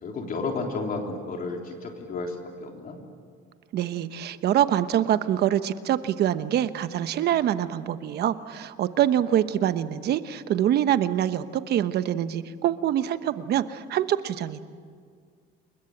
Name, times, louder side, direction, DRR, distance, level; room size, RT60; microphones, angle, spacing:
voice 1, 0.0-3.0, left 3 dB, 45° left, 2 dB, 3.6 m, -32 dB
voice 2, 3.7-14.6, right 11 dB, 50° right, 12 dB, 1.1 m, -25 dB
29.0 x 22.0 x 8.8 m, 2.1 s
cardioid pair, 150°, 21 cm